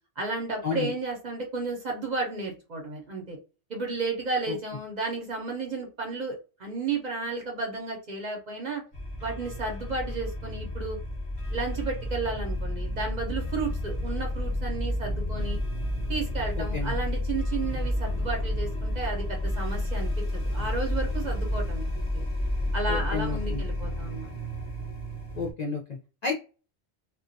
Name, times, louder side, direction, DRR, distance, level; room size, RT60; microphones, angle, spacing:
voice 1, 0.2-3.4 3.7-8.8 9.2-11.0 11.5-15.6 16.1-22.3 22.7-24.3, right 3 dB, 45° right, 1 dB, 0.7 m, -33 dB
sound 1, 8.9-25.5, left 1 dB, 30° left, 0.9 m, -31 dB
voice 2, 16.6-16.9 22.9-23.6 25.3-26.3, left 4 dB, 55° left, -1 dB, 0.5 m, -31 dB
2.2 x 2.2 x 2.5 m, 0.33 s
omnidirectional pair, 1.1 m